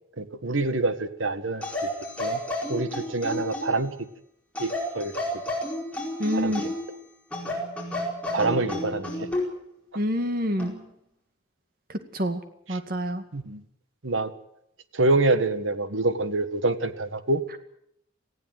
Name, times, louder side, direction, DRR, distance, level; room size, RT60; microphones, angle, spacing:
voice 1, 0.2-1.6 2.2-2.4 2.7-4.1 4.6-5.4 6.3-6.7 8.3-9.3 12.7-12.8 13.3-13.6 14.0-14.3 14.9-17.4, right 2 dB, 90° right, 12 dB, 1.6 m, -26 dB
sound 1, 1.6-3.9 4.5-6.9 7.3-9.5 10.6-10.8, left 1 dB, 5° left, 4.7 m, -31 dB
voice 2, 6.2-6.7 10.0-10.7 11.9-12.4 12.7-13.2, equal, 50° right, 9 dB, 2.1 m, -27 dB
19.0 x 15.5 x 9.3 m, 0.74 s
head